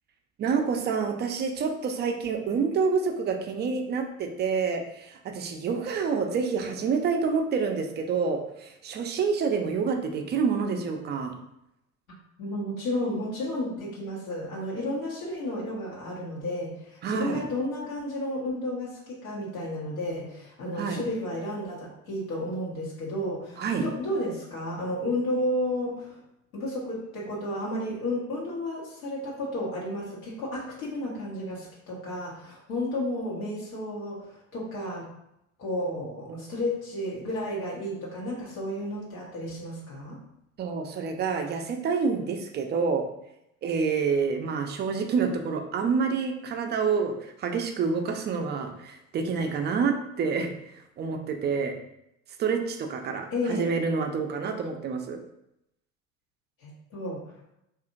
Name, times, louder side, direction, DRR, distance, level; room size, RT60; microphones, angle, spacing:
voice 1, 0.4-11.3 17.0-17.4 20.8-21.0 23.6-23.9 36.3-36.4 40.6-43.0 43.6-50.5 51.0-51.7 52.4-55.2, right 5 dB, 25° right, 4 dB, 0.4 m, -28 dB
voice 2, 12.4-26.2 26.5-35.1 35.6-40.2 53.3-53.7 56.6-57.3, left 1 dB, 80° left, -6 dB, 1.0 m, -32 dB
2.7 x 2.5 x 2.5 m, 0.82 s
hypercardioid pair, 65°, 42 cm